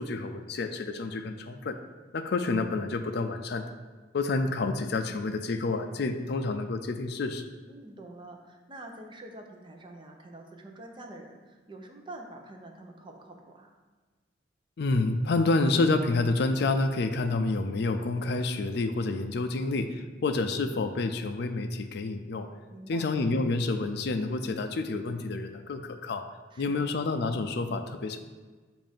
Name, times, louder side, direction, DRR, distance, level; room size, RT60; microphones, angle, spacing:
voice 1, 0.0-1.8 2.1-3.7 4.1-7.5 14.8-22.5 22.9-26.2 26.6-28.2, left 3 dB, 60° left, 7 dB, 0.4 m, -28 dB
voice 2, 7.7-13.7 22.7-23.1 26.5-26.9, right 1 dB, 25° right, 2 dB, 0.7 m, -46 dB
7.3 x 2.6 x 5.1 m, 1.3 s
head